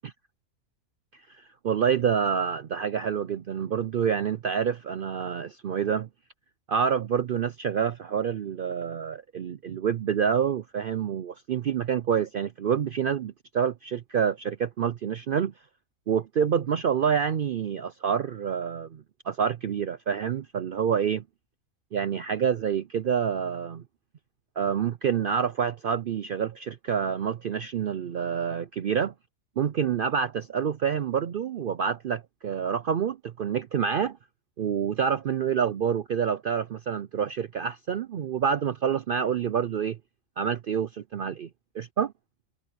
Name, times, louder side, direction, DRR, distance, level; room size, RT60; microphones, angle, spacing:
voice 1, 1.3-6.1 6.7-15.5 16.1-21.2 21.9-23.8 24.6-29.1 29.6-34.2 34.6-40.0 40.4-41.5 41.7-42.1, right 7 dB, 70° right, 0.5 m, -27 dB
omnidirectional pair, 1.5 m